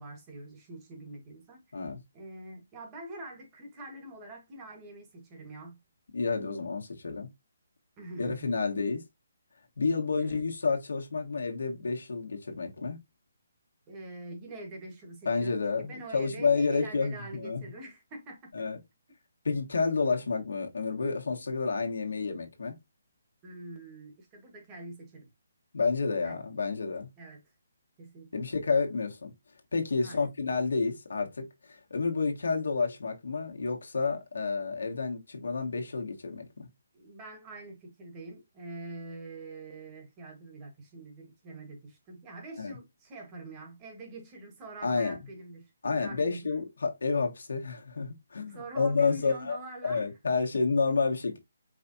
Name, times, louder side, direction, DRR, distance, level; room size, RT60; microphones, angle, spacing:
voice 1, 0.0-1.8 2.1-5.8 8.0-8.5 10.2-10.4 13.9-18.7 23.4-25.3 26.2-26.4 27.2-27.4 28.0-28.4 30.0-30.3 36.9-46.5 48.5-50.1, right 2 dB, 20° right, 1.3 m, -45 dB
voice 2, 6.1-7.3 8.2-9.0 9.8-13.0 15.2-17.6 18.5-18.8 19.4-22.7 25.7-27.1 28.3-29.3 29.7-36.7 42.6-42.7 44.8-45.2 45.8-49.6 49.8-51.4, left 4 dB, 80° left, 1.3 m, -30 dB
4.9 x 3.4 x 2.7 m
hypercardioid pair, 160°, 0 cm